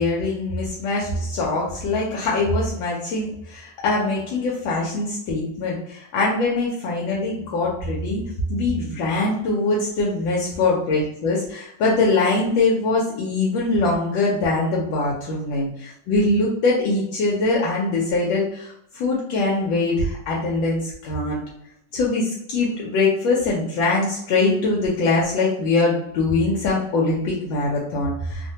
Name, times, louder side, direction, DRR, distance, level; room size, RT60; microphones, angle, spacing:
voice 1, 0.0-8.2 8.5-21.4 21.9-28.5, left 3 dB, 80° left, -4 dB, 1.3 m, -22 dB
3.2 x 2.1 x 2.7 m, 0.74 s
omnidirectional pair, 2.2 m